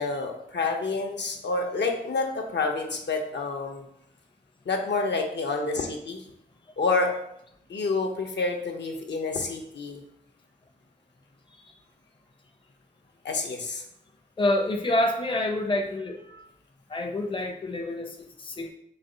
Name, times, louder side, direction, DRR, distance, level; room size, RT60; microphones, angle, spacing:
voice 1, 0.0-3.8 4.7-6.2 6.8-7.1 7.7-10.0 13.2-13.8, left 3 dB, 75° left, 2 dB, 0.7 m, -28 dB
voice 2, 14.4-16.4 16.9-18.7, left 1 dB, 30° left, 3 dB, 0.5 m, -27 dB
4.0 x 2.0 x 3.8 m, 0.75 s
cardioid pair, 55°, 19 cm